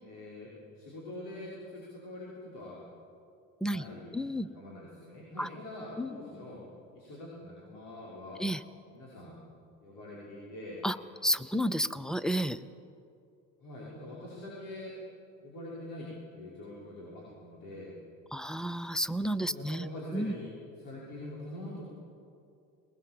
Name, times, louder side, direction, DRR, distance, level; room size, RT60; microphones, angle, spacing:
voice 1, 0.0-2.8 3.7-4.2 4.5-6.6 6.9-8.4 8.9-9.4 9.8-10.8 13.6-15.0 15.4-16.1 16.3-17.9 19.4-21.9, left 1 dB, 80° left, -5 dB, 5.9 m, -44 dB
voice 2, 4.1-4.5 5.4-5.5 6.0-6.2 8.4-8.6 10.8-11.0 11.2-12.6 18.3-19.9 20.1-20.3, equal, ahead, 15 dB, 0.5 m, -31 dB
21.5 x 20.0 x 7.6 m, 2.6 s
cardioid pair, 130°, 40 cm